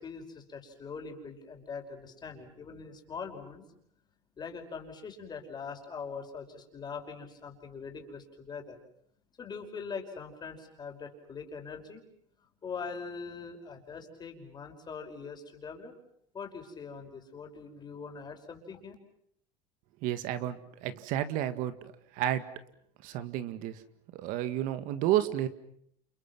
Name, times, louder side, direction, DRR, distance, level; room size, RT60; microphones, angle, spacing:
voice 1, 0.0-3.6 4.4-8.8 9.4-12.0 12.6-15.9 16.3-19.0, left 5 dB, 30° left, 4 dB, 5.5 m, -42 dB
voice 2, 20.0-22.5 23.0-23.8 24.1-25.5, right 12 dB, 65° right, 11 dB, 1.9 m, -31 dB
30.0 x 28.0 x 6.1 m, 0.71 s
supercardioid pair, 115°, 15 cm